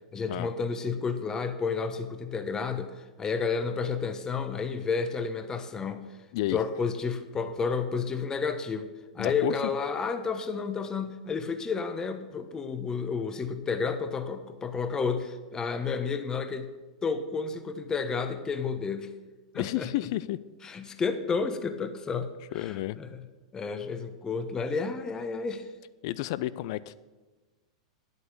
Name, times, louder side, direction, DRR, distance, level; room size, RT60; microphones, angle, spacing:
voice 1, 0.1-6.1 6.5-16.7 17.0-19.1 19.5-19.9 20.6-23.2 23.5-25.7, left 5 dB, 20° left, 10 dB, 1.0 m, -31 dB
voice 2, 9.2-9.5 19.5-20.4 22.5-23.0 26.0-26.9, left 16 dB, 50° left, 18 dB, 0.5 m, -31 dB
10.5 x 8.2 x 6.9 m, 1.3 s
figure-of-eight pair, 95°, 3 cm